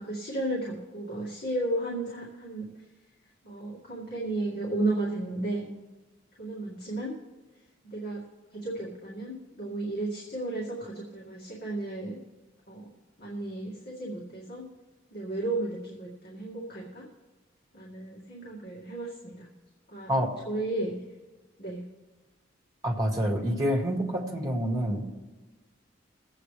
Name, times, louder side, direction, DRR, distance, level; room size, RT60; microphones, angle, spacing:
voice 1, 0.0-2.7 3.4-5.7 6.4-7.1 7.9-8.2 8.5-12.2 12.7-12.9 13.2-14.7 15.1-17.0 17.7-19.5 19.9-20.1 20.5-21.0 21.6-21.8, right 2 dB, 50° left, -6 dB, 2.2 m, -33 dB
voice 2, 22.8-25.1, equal, 20° right, 0 dB, 2.0 m, -27 dB
22.5 x 8.7 x 3.4 m, 1.2 s
head